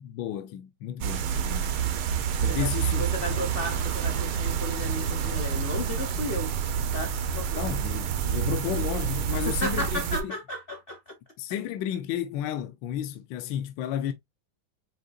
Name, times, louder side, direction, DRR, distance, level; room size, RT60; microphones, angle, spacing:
voice 1, 0.0-1.7 2.4-3.0 3.3-3.4 7.6-10.3 11.4-14.1, left 10 dB, 75° left, 1.2 m, -32 dB
sound 1, 1.0-10.2, right 8 dB, 85° right, 1.7 m, -28 dB
voice 2, 2.5-6.5 6.9-7.6 9.3-11.1, left 1 dB, 45° left, 0.7 m, -34 dB
7.6 x 2.8 x 2.4 m
omnidirectional pair, 2.2 m